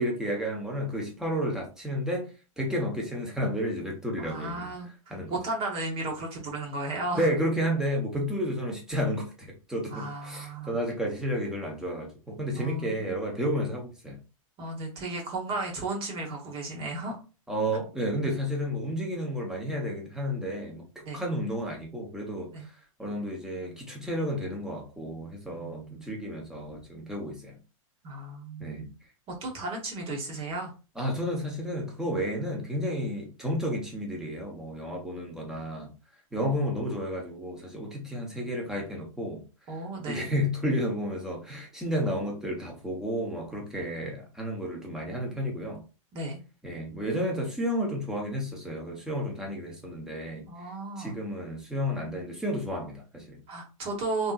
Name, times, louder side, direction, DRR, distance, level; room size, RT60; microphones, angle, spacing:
voice 1, 0.0-2.3 2.6-4.7 5.1-5.3 7.2-14.2 17.5-20.8 21.1-22.7 23.0-27.5 28.6-28.9 31.0-35.9 36.3-39.4 40.1-45.8 46.6-50.5 51.0-53.4, equal, 5° right, 1.1 m, -31 dB
voice 2, 4.2-7.3 9.9-10.8 12.5-13.2 14.6-17.2 21.0-21.2 22.5-22.7 25.5-26.1 28.0-28.9 29.3-30.7 39.7-40.3 46.1-46.4 50.5-51.1 53.5-54.3, right 2 dB, 35° right, 1.3 m, -34 dB
3.4 x 2.8 x 2.4 m
hypercardioid pair, 120°, 18 cm